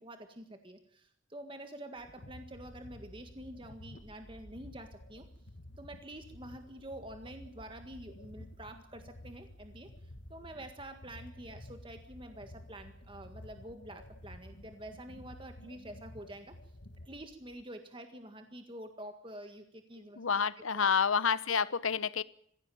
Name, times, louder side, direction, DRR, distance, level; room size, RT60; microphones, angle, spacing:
voice 1, 0.0-5.2 5.8-9.9 10.3-16.5 17.0-20.9, right 1 dB, 25° right, 6 dB, 1.7 m, -47 dB
sound 1, 2.0-17.6, left 1 dB, 60° left, 1.7 m, -52 dB
voice 2, 20.2-22.2, left 6 dB, 85° left, 17 dB, 0.9 m, -29 dB
20.5 x 16.0 x 9.2 m, 0.66 s
head